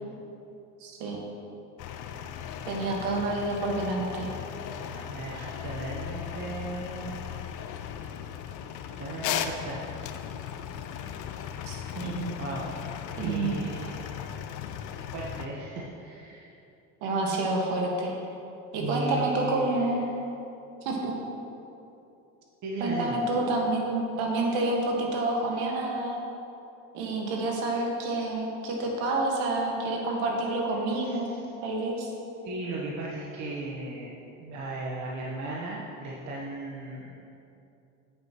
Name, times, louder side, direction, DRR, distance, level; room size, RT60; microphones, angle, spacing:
voice 1, 0.8-1.2 2.7-4.3 11.7-12.3 13.2-13.6 17.0-18.2 18.7-20.0 20.8-21.1 22.8-26.2 26.9-31.3 31.6-32.1, right 2 dB, 75° right, 0 dB, 1.7 m, -28 dB
sound 1, 1.8-15.5, left 9 dB, 55° left, 0.6 m, -37 dB
voice 2, 4.9-7.2 9.0-9.9 12.4-12.8 13.2-14.3 15.1-16.5 18.8-19.9 22.6-23.2 31.0-31.4 32.4-37.1, right 2 dB, 50° right, -4 dB, 1.1 m, -36 dB
8.8 x 7.8 x 3.0 m, 2.8 s
supercardioid pair, 90°, 38 cm